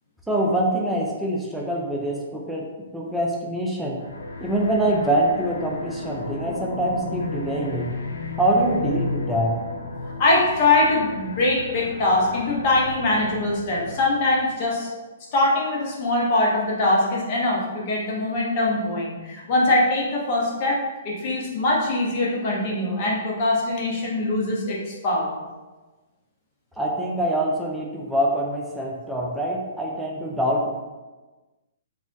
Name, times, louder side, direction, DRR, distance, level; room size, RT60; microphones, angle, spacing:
voice 1, 0.3-2.7 2.9-4.0 4.4-7.9 8.4-9.5 26.8-30.7, right 1 dB, 5° right, -3 dB, 0.4 m, -24 dB
sound 1, 4.0-14.6, left 3 dB, 80° left, 0.4 m, -34 dB
voice 2, 10.2-14.9 15.3-20.8 21.0-25.4, left 2 dB, 45° left, -3 dB, 0.8 m, -22 dB
2.4 x 2.0 x 3.8 m, 1.2 s
hypercardioid pair, 140°, 0 cm